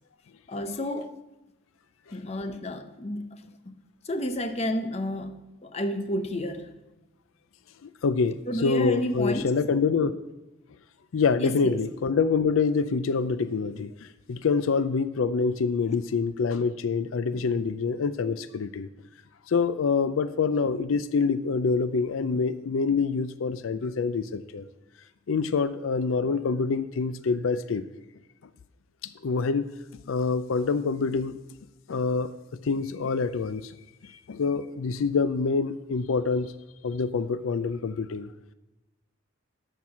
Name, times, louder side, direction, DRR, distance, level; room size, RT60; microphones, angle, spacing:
voice 1, 0.5-1.1 2.1-6.7 8.5-9.5 11.4-11.8, left 1 dB, 30° left, 8 dB, 0.7 m, -31 dB
voice 2, 7.8-10.1 11.1-18.9 19.5-24.7 25.3-27.8 29.0-29.7 30.1-31.4 31.9-32.3 32.6-33.7 34.0-36.5 36.8-38.3, left 4 dB, 85° left, 13 dB, 0.4 m, -26 dB
13.0 x 4.6 x 6.1 m, 1.0 s
head